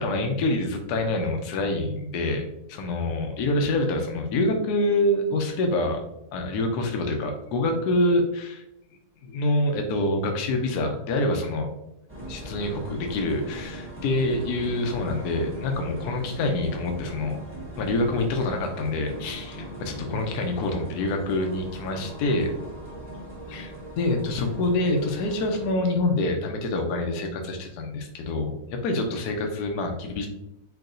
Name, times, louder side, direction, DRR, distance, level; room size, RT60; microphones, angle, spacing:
voice 1, 0.0-6.0 6.3-8.6 9.2-11.7 12.3-17.4 17.8-22.5 23.5-30.3, left 2 dB, 75° left, 3 dB, 1.2 m, -26 dB
sound 1, 12.1-25.7, right 1 dB, 10° right, 1.1 m, -39 dB
4.7 x 4.3 x 2.6 m, 0.88 s
omnidirectional pair, 1.8 m